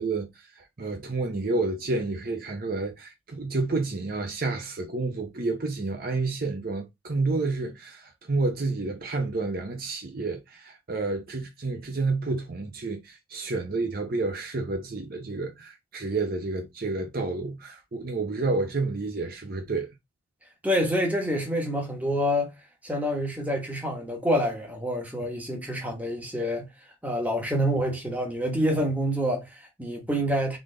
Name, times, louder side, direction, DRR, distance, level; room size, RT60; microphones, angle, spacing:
voice 1, 0.0-19.9, right 3 dB, 45° right, 0.6 m, -30 dB
voice 2, 20.6-22.5 22.8-26.7 27.0-30.6, equal, 5° right, 1.1 m, -27 dB
4.0 x 3.3 x 3.7 m
head